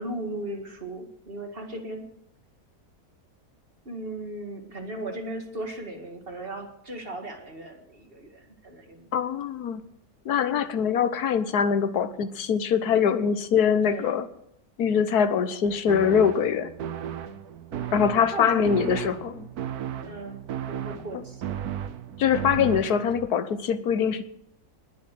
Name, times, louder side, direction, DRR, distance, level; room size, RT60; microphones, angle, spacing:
voice 1, 0.0-2.0 3.9-9.1 13.8-14.2 17.7-17.9 18.3-19.0 20.0-21.7, right 1 dB, 40° right, 4 dB, 2.2 m, -37 dB
voice 2, 9.1-9.8 10.2-14.2 14.8-16.7 17.9-19.5 22.2-24.2, left 7 dB, 85° left, 12 dB, 1.5 m, -23 dB
sound 1, 15.9-23.3, right 9 dB, 80° right, 1.3 m, -35 dB
20.0 x 7.5 x 7.7 m, 0.76 s
omnidirectional pair, 1.6 m